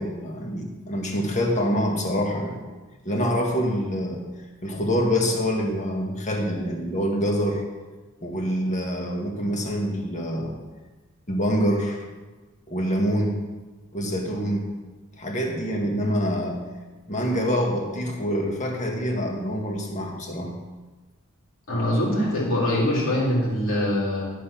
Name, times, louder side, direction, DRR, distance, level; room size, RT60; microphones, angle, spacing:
voice 1, 0.0-2.6 3.1-4.2 4.6-7.6 8.2-10.5 11.3-12.1 12.7-13.4 13.9-14.7 15.2-16.6 17.1-20.5, equal, 35° left, 1 dB, 1.8 m, -26 dB
voice 2, 21.7-24.2, left 1 dB, 75° left, -6 dB, 3.9 m, -23 dB
12.5 x 5.4 x 5.9 m, 1.3 s
head